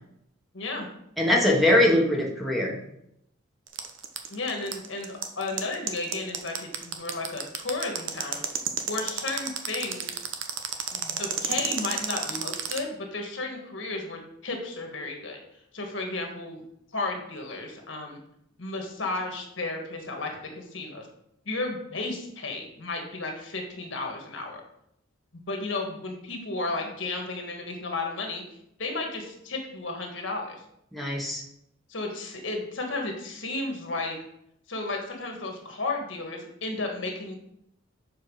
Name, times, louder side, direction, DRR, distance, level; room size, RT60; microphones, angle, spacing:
voice 1, 0.5-0.9 4.3-8.4 8.9-10.1 10.9-15.4 15.7-16.6 16.9-18.2 18.6-21.1 21.4-24.6 25.5-28.4 28.8-30.6 31.9-34.1 34.7-37.4, left 3 dB, 70° left, 2 dB, 1.5 m, -33 dB
voice 2, 1.2-2.8 30.9-31.4, left 1 dB, ahead, -1 dB, 1.2 m, -22 dB
sound 1, 3.7-12.8, right 9 dB, 70° right, 0.8 m, -30 dB
7.3 x 4.6 x 4.7 m, 0.77 s
head